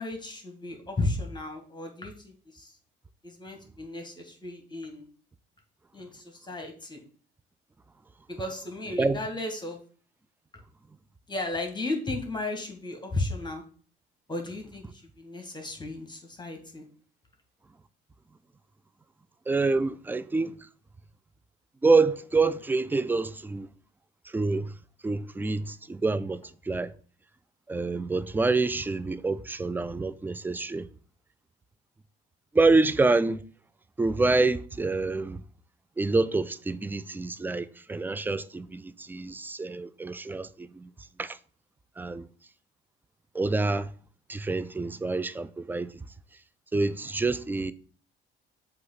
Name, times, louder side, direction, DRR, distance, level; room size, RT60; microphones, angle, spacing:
voice 1, 0.0-2.7 3.2-5.1 5.9-7.0 8.3-9.8 11.3-13.6 14.3-16.8, left 2 dB, 15° left, 1.9 m, -34 dB
voice 2, 19.5-20.7 21.8-23.7 24.3-24.7 25.0-26.9 27.7-30.9 32.5-33.4 34.0-35.4 36.0-40.9 41.2-41.4 42.0-42.3 43.3-43.9 44.3-46.0 46.7-47.7, right 3 dB, 5° right, 0.4 m, -27 dB
7.6 x 3.0 x 5.6 m
figure-of-eight pair, 50°, 31 cm